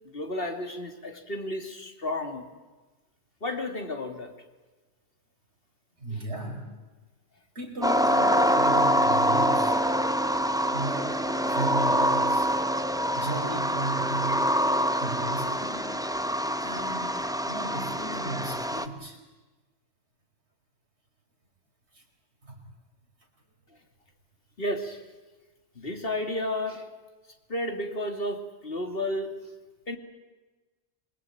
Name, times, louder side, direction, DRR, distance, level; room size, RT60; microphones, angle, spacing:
voice 1, 0.1-2.5 3.4-4.3 6.1-6.2 24.6-25.0 25.8-26.9 27.5-29.6 29.9-30.0, left 1 dB, 60° left, 5 dB, 2.9 m, -32 dB
voice 2, 6.0-6.7 7.6-9.8 10.7-11.2 11.4-12.5 13.1-14.4 15.0-15.9 16.6-17.2 17.5-19.2 21.9-22.0 22.4-22.6, right 2 dB, 80° right, 2 dB, 5.4 m, -35 dB
sound 1, 7.8-18.9, equal, 5° right, 1.0 m, -25 dB
27.0 x 22.5 x 9.2 m, 1.2 s
omnidirectional pair, 1.1 m